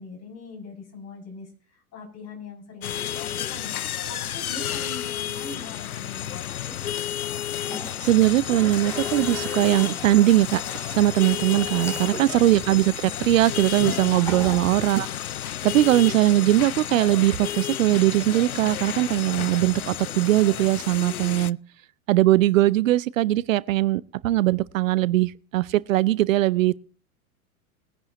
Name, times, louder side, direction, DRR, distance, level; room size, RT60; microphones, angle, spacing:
voice 1, 0.0-3.7 4.1-6.7 14.3-14.8, left 3 dB, 35° left, 7.0 m, -42 dB
sound 1, 2.8-21.5, left 11 dB, 85° left, 0.5 m, -31 dB
Toilet flush, 7.5-15.7, right 1 dB, 5° left, 3.9 m, -40 dB
voice 2, 8.0-10.6 10.9-15.1 15.6-21.6 22.1-26.9, right 15 dB, 65° right, 0.6 m, -20 dB
21.0 x 10.5 x 3.0 m
figure-of-eight pair, 90°, 43 cm